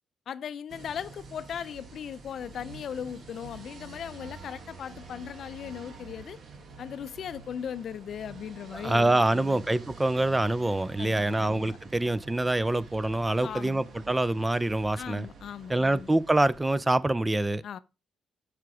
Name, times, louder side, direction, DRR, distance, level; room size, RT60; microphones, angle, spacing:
voice 1, 0.3-6.4 6.8-9.6 11.0-11.6 13.4-13.8 15.0-16.1 17.6-17.8, left 8 dB, 60° left, 0.4 m, -38 dB
sound 1, 0.7-16.8, right 4 dB, 55° right, 1.7 m, -48 dB
voice 2, 8.7-15.3 15.7-17.6, right 2 dB, 15° right, 0.4 m, -25 dB
7.4 x 5.0 x 4.7 m
cardioid pair, 90°, 0 cm